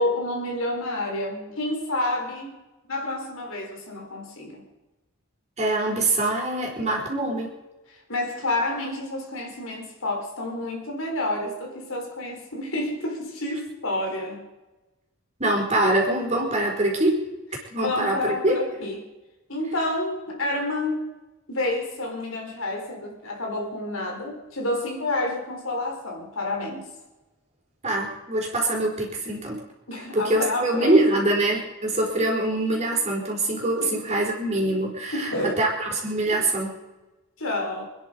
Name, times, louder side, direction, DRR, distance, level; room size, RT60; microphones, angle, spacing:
voice 1, 0.0-2.5 2.9-4.6 7.9-14.5 17.8-19.1 19.5-21.1 21.5-26.9 29.9-31.2 33.8-33.9 35.1-35.6 36.3-36.5 37.4-37.9, left 2 dB, 70° left, 1 dB, 4.3 m, -29 dB
voice 2, 5.6-7.5 15.4-17.2 17.7-18.6 27.8-29.6 30.1-36.8, right 1 dB, 30° right, -1 dB, 4.5 m, -24 dB
27.0 x 10.5 x 5.2 m, 1.1 s
head